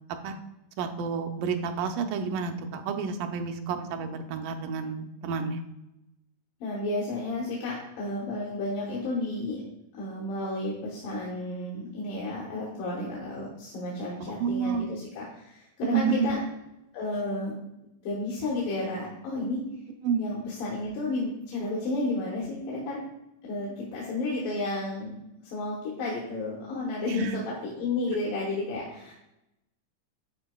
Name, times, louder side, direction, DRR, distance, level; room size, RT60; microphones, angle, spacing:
voice 1, 0.8-5.6 14.3-14.8 15.8-16.3 20.0-20.2 27.1-27.4, right 6 dB, 90° right, 5 dB, 2.2 m, -30 dB
voice 2, 6.6-9.6 9.9-16.4 16.9-17.5 18.0-19.6 20.2-23.0 23.4-25.1 25.4-29.1, left 2 dB, 85° left, -5 dB, 2.8 m, -32 dB
11.5 x 4.4 x 2.2 m, 0.89 s
omnidirectional pair, 3.7 m